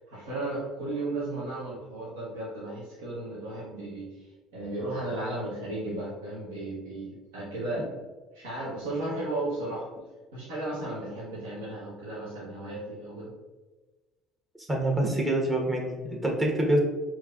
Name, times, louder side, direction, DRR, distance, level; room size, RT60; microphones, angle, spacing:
voice 1, 0.1-7.8 8.3-9.9 10.3-13.3, right 2 dB, 80° right, -7 dB, 1.0 m, -35 dB
voice 2, 14.7-16.8, right 1 dB, 20° right, -1 dB, 1.2 m, -26 dB
4.7 x 2.8 x 2.4 m, 1.2 s
hypercardioid pair, 65°, 0 cm